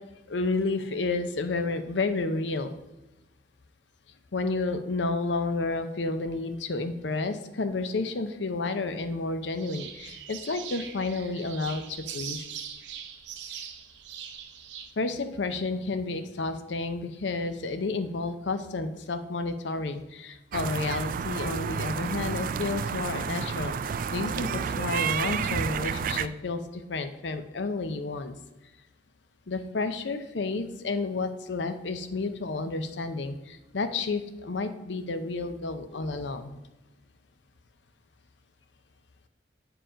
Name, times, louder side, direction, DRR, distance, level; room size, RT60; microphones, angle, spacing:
voice 1, 0.3-2.7 4.3-12.4 15.0-28.4 29.5-36.6, left 3 dB, 85° left, 9 dB, 0.7 m, -31 dB
sound 1, 9.6-14.9, right 8 dB, 85° right, 0.8 m, -41 dB
Ducks in the park, 20.5-26.3, right 6 dB, 50° right, 0.3 m, -30 dB
8.8 x 4.7 x 5.0 m, 1.0 s
head